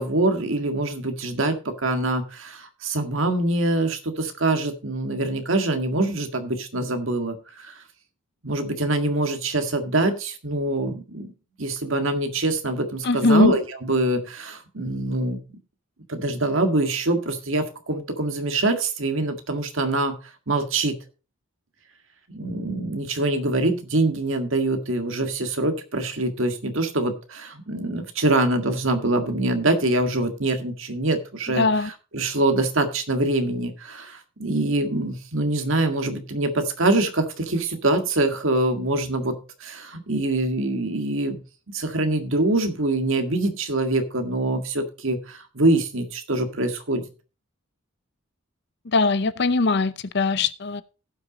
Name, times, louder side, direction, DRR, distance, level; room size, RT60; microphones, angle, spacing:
voice 1, 0.0-7.8 8.4-11.3 11.6-15.4 16.1-20.2 20.5-21.0 22.3-31.7 32.1-41.4 41.7-47.0, right 2 dB, 65° right, 1.8 m, -24 dB
voice 2, 13.0-13.6 31.6-31.9 48.9-50.8, left 3 dB, 50° left, 0.6 m, -20 dB
16.0 x 6.1 x 4.0 m
head